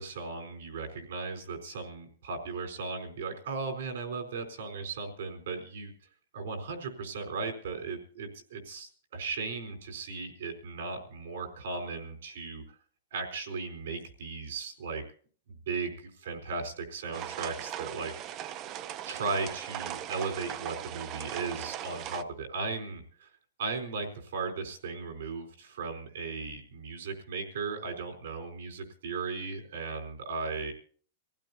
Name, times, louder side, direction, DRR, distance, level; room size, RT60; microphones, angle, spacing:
voice 1, 0.0-5.9 6.3-12.6 13.1-15.0 15.5-18.5 19.0-23.3 23.6-30.7, right 4 dB, 75° right, 2 dB, 4.2 m, -37 dB
sound 1, 17.1-22.2, right 11 dB, 30° right, 0.6 m, -39 dB
25.0 x 15.5 x 2.8 m, 0.43 s
hypercardioid pair, 155°, 0 cm